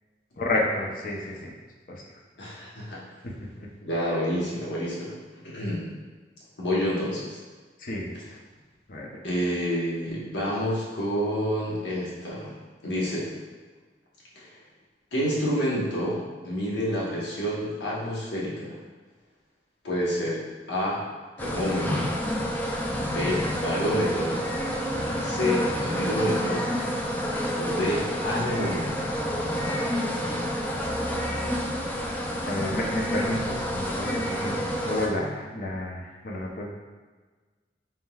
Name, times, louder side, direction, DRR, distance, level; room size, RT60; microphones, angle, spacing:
voice 1, 0.4-1.5 1.9-2.0 3.2-3.7 7.8-8.2 8.9-9.2 32.4-34.6 34.8-36.7, left 1 dB, 50° left, -2 dB, 0.6 m, -30 dB
voice 2, 2.4-3.0 3.8-5.2 5.4-5.9 6.6-7.4 9.2-12.6 12.8-13.3 14.3-14.5 15.1-18.8 19.8-20.4 20.7-21.0 21.4-22.1 23.0-24.4 25.2-26.7 27.6-29.0, equal, 75° left, -6 dB, 1.1 m, -28 dB
sound 1, 21.4-35.1, equal, 10° left, 0.3 m, -29 dB
4.3 x 3.6 x 2.3 m, 1.4 s
head